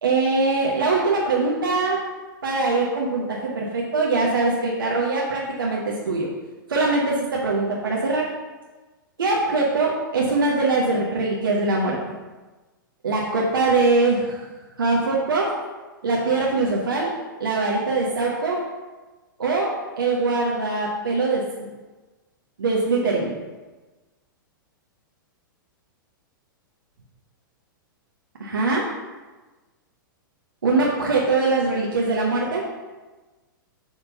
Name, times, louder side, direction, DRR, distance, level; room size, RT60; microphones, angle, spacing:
voice 1, 0.0-2.0 2.4-6.3 6.7-8.2 9.2-12.0 13.0-14.4 14.8-15.5 16.0-17.1 17.4-18.6 19.4-19.7 20.0-21.4 22.6-23.3 28.4-28.8 30.6-32.6, right 3 dB, 75° right, -3 dB, 1.2 m, -22 dB
7.2 x 3.6 x 5.7 m, 1.2 s
figure-of-eight pair, 105°, 11 cm